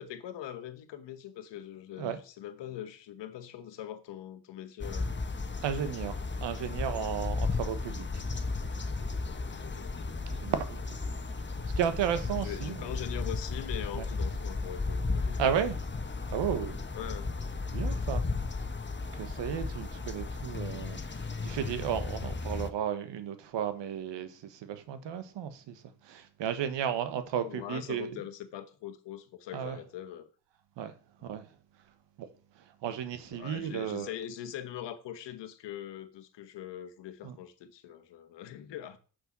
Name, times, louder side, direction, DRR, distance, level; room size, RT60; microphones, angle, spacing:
voice 1, 0.0-5.1 9.5-10.1 12.1-15.6 16.9-17.4 19.7-19.8 27.4-30.3 33.3-39.0, left 11 dB, 90° left, 1.2 m, -42 dB
sound 1, 4.8-22.7, left 3 dB, 25° left, 1.3 m, -34 dB
voice 2, 5.6-8.2 10.2-11.0 11.6-12.8 13.9-14.1 15.4-15.7 16.3-16.8 17.7-18.3 19.1-28.1 29.5-29.8 30.8-30.9 31.2-31.4 32.2-32.3 32.8-34.1 37.2-37.4, right 9 dB, 85° right, 1.3 m, -34 dB
6.7 x 5.9 x 7.5 m
cardioid pair, 60°, 42 cm